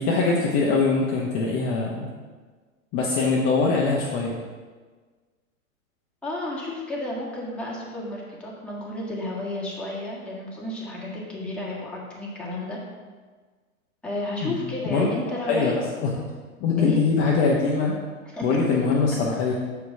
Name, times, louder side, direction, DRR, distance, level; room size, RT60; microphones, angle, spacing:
voice 1, 0.0-2.1 2.9-4.4 14.4-14.6 14.9-15.1 15.5-16.1 16.6-18.0 18.4-19.5, left 4 dB, 30° left, -3 dB, 0.9 m, -22 dB
voice 2, 6.2-12.8 14.0-15.7 16.1-16.3 16.8-17.0 18.3-18.4, left 1 dB, 5° left, -6 dB, 1.7 m, -32 dB
6.9 x 5.0 x 4.7 m, 1.4 s
hypercardioid pair, 120°, 42 cm